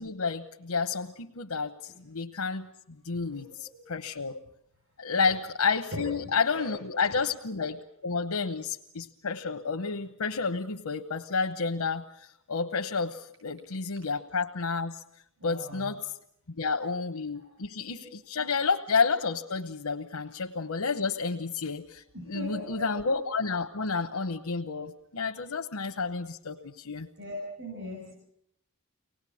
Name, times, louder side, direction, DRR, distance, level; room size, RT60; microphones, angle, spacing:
voice 1, 0.0-2.7 3.0-4.4 5.0-15.0 15.4-16.1 16.6-27.1, left 4 dB, 85° left, 3 dB, 1.0 m, -30 dB
voice 2, 3.1-3.8 5.1-5.2 5.9-6.1 6.5-6.7 15.4-15.9 17.8-18.1 18.4-18.5 22.1-22.8 27.2-28.1, left 1 dB, 65° right, -1 dB, 6.8 m, -40 dB
25.0 x 18.5 x 8.6 m, 0.75 s
head